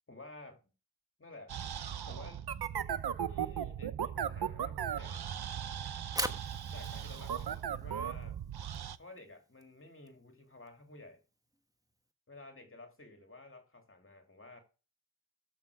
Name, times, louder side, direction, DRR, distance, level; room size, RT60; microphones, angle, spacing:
voice 1, 0.1-0.7 1.2-1.5 2.1-2.5 3.3-5.2 6.7-8.4 9.0-11.2 12.3-14.6, left 2 dB, 30° left, 2.5 m, -53 dB
sound 1, 1.5-9.0, right 9 dB, 60° right, 0.8 m, -37 dB
Fire, 5.9-12.1, right 1 dB, 10° right, 1.3 m, -44 dB
13.5 x 6.0 x 4.8 m
wide cardioid pair, 100°, 45 cm